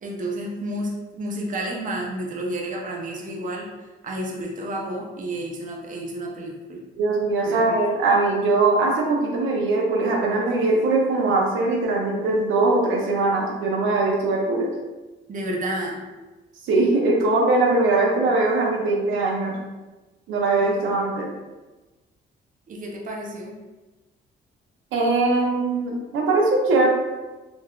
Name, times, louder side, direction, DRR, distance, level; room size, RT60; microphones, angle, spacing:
voice 1, 0.0-3.7 4.0-6.8 7.4-7.8 15.3-16.0 22.7-23.5, right 1 dB, 40° right, -1 dB, 0.6 m, -31 dB
voice 2, 7.0-14.7 16.6-19.6 20.3-21.3 24.9-26.9, right 3 dB, 85° right, -2 dB, 0.7 m, -21 dB
3.8 x 2.5 x 2.3 m, 1.2 s
cardioid pair, 90°, 20 cm